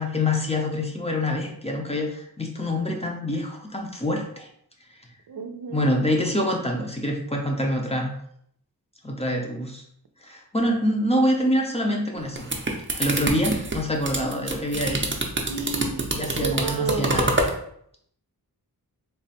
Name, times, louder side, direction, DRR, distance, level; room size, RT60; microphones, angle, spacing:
voice 1, 0.0-4.5 5.7-8.1 9.0-9.8 10.2-12.5 12.9-15.2 16.1-17.3, left 1 dB, 15° left, 1 dB, 0.6 m, -26 dB
voice 2, 5.3-5.9 14.1-14.3 15.5-16.0 16.4-17.2, right 5 dB, 80° right, 7 dB, 0.5 m, -31 dB
sound 1, 12.2-17.6, right 2 dB, 30° right, 0.6 m, -26 dB
3.3 x 2.1 x 4.1 m, 0.67 s
wide cardioid pair, 65°, 37 cm